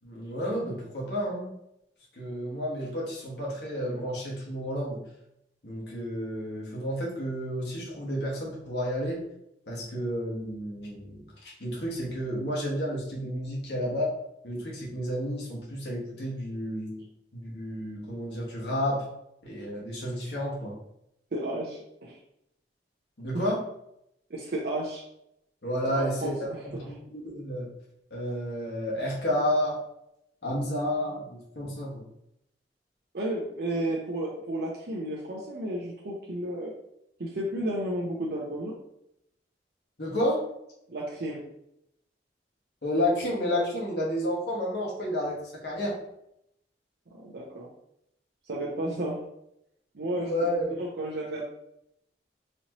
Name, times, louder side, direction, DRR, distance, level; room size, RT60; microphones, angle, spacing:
voice 1, 0.0-1.5 2.2-5.0 5.6-9.2 9.7-14.1 14.4-17.0 17.3-19.0 19.4-20.8 23.2-23.6 25.6-26.3 26.6-27.7 28.1-29.8 30.4-32.0 40.0-40.4 42.8-45.9 48.8-48.9 50.2-50.7, equal, 65° left, -4 dB, 1.4 m, -31 dB
voice 2, 21.3-22.2 24.3-25.0 25.9-26.9 33.1-36.7 37.2-38.8 40.9-41.5 47.1-47.7 48.5-49.2 49.9-51.4, right 1 dB, 60° right, -3 dB, 0.6 m, -33 dB
4.2 x 2.9 x 2.9 m, 0.78 s
head